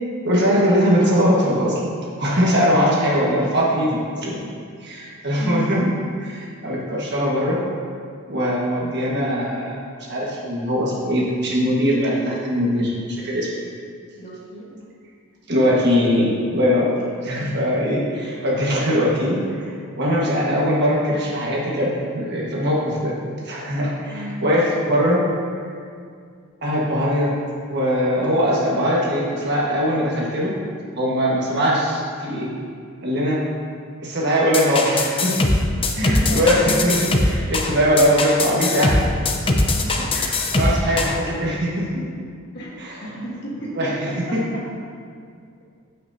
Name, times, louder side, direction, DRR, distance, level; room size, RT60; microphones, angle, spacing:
voice 1, 0.2-1.8 2.2-4.4 4.8-5.9 6.2-7.6 8.3-13.7 15.5-16.9 17.2-23.1 23.4-25.2 26.6-27.3 27.7-30.5 31.0-32.5 33.0-33.4 34.0-35.4 35.9-39.1 40.1-42.1 42.8-43.1 43.7-44.4, equal, 50° right, -5 dB, 1.4 m, -21 dB
voice 2, 14.2-14.7 24.1-24.4 35.9-36.8 39.7-40.1 42.5-44.6, equal, 50° left, -5 dB, 1.4 m, -31 dB
sound 1, 34.5-41.2, left 2 dB, 25° left, 0.6 m, -21 dB
14.0 x 5.9 x 2.7 m, 2.2 s
head